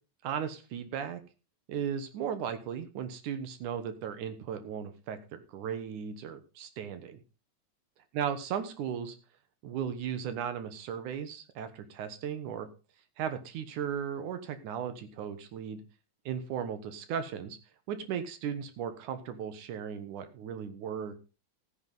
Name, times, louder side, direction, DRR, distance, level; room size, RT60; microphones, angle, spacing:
voice 1, 0.2-1.2 1.7-7.2 8.1-9.2 9.6-12.7 13.2-15.8 16.3-17.6 17.9-21.2, right 8 dB, 75° right, 10 dB, 2.6 m, -36 dB
14.0 x 9.9 x 3.9 m, 0.32 s
omnidirectional pair, 3.6 m